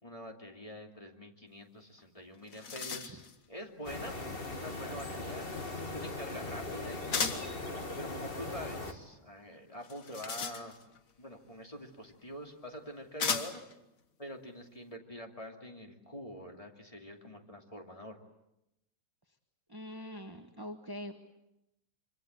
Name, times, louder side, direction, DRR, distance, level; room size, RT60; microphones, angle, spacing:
voice 1, 0.0-4.1 4.5-7.5 8.0-10.8 11.2-13.6 14.2-18.2, equal, 25° left, 2 dB, 2.7 m, -45 dB
sound 1, 2.0-2.1 2.3-3.4 7.1-7.6 9.8-11.0 12.1-12.2 13.2-13.7, left 5 dB, 70° left, 1.9 m, -35 dB
sound 2, 3.8-8.9, left 2 dB, 40° left, 2.2 m, -39 dB
voice 2, 19.7-21.1, left 1 dB, 15° right, 5 dB, 1.5 m, -43 dB
25.0 x 25.0 x 8.0 m, 0.88 s
omnidirectional pair, 1.5 m